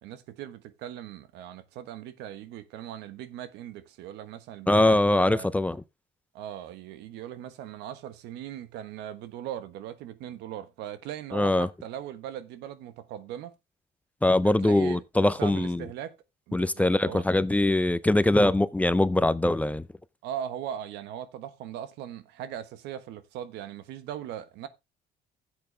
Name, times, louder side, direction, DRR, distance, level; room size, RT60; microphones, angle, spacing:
voice 1, 0.0-5.5 6.3-13.5 14.4-16.1 16.5-17.2 20.2-24.7, right 10 dB, 90° right, 1.3 m, -39 dB
voice 2, 4.7-5.8 11.3-11.7 14.2-15.8 16.5-19.8, left 1 dB, 10° left, 0.5 m, -22 dB
12.5 x 8.0 x 3.3 m
cardioid pair, 110°, 17 cm